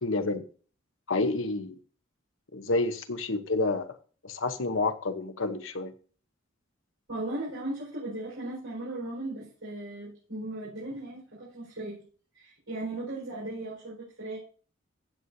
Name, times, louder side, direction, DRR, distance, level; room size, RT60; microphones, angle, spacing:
voice 1, 0.0-0.4 1.1-1.8 2.5-4.0 4.2-5.9, left 3 dB, 75° left, 1.0 m, -29 dB
voice 2, 7.1-12.0 12.3-14.4, right 2 dB, 80° right, 4.9 m, -37 dB
15.5 x 8.1 x 2.8 m
head